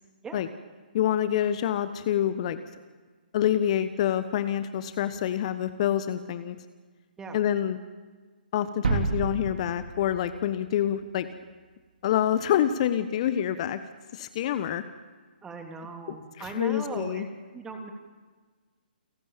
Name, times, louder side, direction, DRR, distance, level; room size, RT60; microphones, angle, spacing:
voice 1, 0.9-2.6 3.3-6.6 7.3-7.8 8.5-11.3 12.0-13.8 14.1-14.8 16.4-17.3, left 10 dB, 40° left, 11 dB, 1.1 m, -26 dB
sound 1, 8.8-10.9, right 4 dB, 65° right, 3.6 m, -30 dB
voice 2, 15.4-17.2 17.5-17.9, right 4 dB, 10° right, 3 dB, 3.0 m, -38 dB
29.0 x 12.0 x 9.0 m, 1.4 s
figure-of-eight pair, 130°, 5 cm